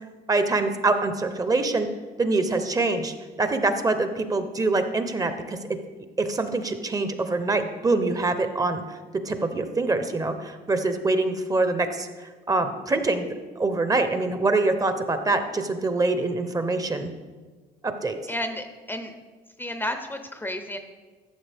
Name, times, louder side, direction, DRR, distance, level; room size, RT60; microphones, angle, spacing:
voice 1, 0.3-1.9 2.2-5.6 6.2-9.0 9.3-13.3 13.6-17.1 17.8-18.2, right 3 dB, 20° right, 8 dB, 0.8 m, -25 dB
voice 2, 18.3-19.1 19.6-20.8, left 1 dB, 10° left, 7 dB, 0.6 m, -32 dB
13.5 x 6.8 x 3.5 m, 1.3 s
cardioid pair, 110°, 17 cm